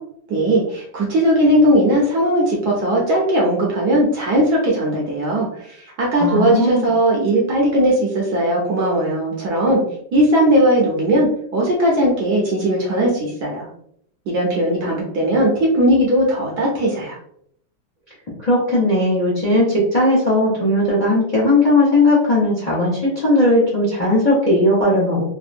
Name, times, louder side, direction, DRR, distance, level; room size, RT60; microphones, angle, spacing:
voice 1, 0.3-9.8 10.1-13.7 14.3-17.2, right 1 dB, 65° right, -3 dB, 1.1 m, -18 dB
voice 2, 6.2-6.9 18.4-25.3, left 1 dB, 45° left, -6 dB, 0.5 m, -17 dB
3.3 x 2.1 x 2.5 m, 0.68 s
omnidirectional pair, 2.2 m